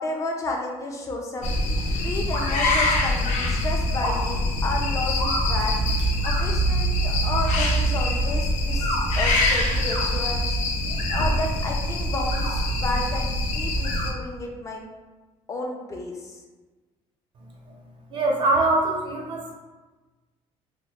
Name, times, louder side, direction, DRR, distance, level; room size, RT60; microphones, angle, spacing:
voice 1, 0.0-1.5 2.0-5.8 6.2-10.5 11.1-14.8 15.5-16.4, left 2 dB, 25° left, 1 dB, 0.4 m, -32 dB
sound 1, 1.4-14.1, equal, 80° left, 0.5 m, -24 dB
sound 2, 2.3-2.9 3.9-4.2 5.2-5.5 6.2-6.4 7.3-7.6 8.7-9.0 9.7-10.0 10.9-11.3 12.2-12.5 13.8-14.0, left 1 dB, 60° left, 0.9 m, -30 dB
voice 2, 18.1-19.5, right 2 dB, 40° right, -1 dB, 0.4 m, -23 dB
2.9 x 2.1 x 2.9 m, 1.2 s
cardioid pair, 155°, 12 cm